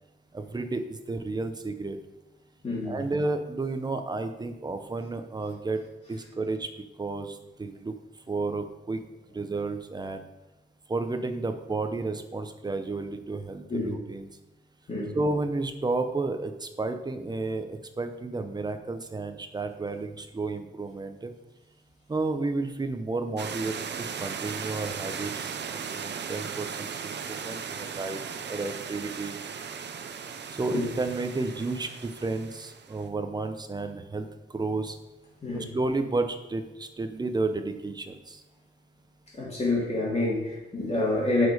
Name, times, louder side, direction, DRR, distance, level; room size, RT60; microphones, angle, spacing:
voice 1, 0.3-2.0 2.9-6.7 7.0-7.9 8.3-9.0 9.3-10.3 10.9-14.3 15.1-21.3 22.1-29.4 30.5-35.0 35.5-38.4, right 3 dB, 20° right, 8 dB, 0.6 m, -32 dB
voice 2, 2.6-3.0 13.7-13.9 14.9-15.2 30.7-30.8 35.4-35.7 39.4-41.5, left 2 dB, 35° left, -5 dB, 2.8 m, -28 dB
sound 1, 23.4-33.0, right 6 dB, 70° right, 0.6 m, -37 dB
7.9 x 5.1 x 4.9 m, 0.99 s
wide cardioid pair, 145°, 19 cm